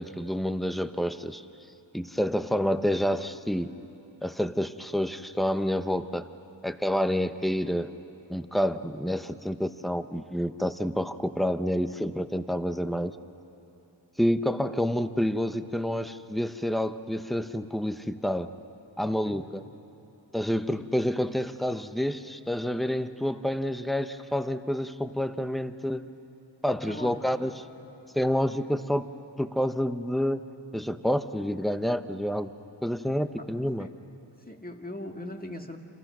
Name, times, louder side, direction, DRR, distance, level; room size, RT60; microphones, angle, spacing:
voice 1, 0.0-1.4 1.9-3.8 4.2-6.3 6.6-7.9 8.3-13.2 14.2-18.5 19.0-19.6 20.3-26.1 26.6-27.5 28.1-29.1 29.4-32.5 32.8-33.9, equal, ahead, 10 dB, 0.9 m, -28 dB
voice 2, 26.8-27.5 33.8-33.9 34.5-35.8, left 1 dB, 20° left, 3 dB, 2.0 m, -39 dB
29.0 x 27.0 x 6.2 m, 2.8 s
wide cardioid pair, 65°, 45 cm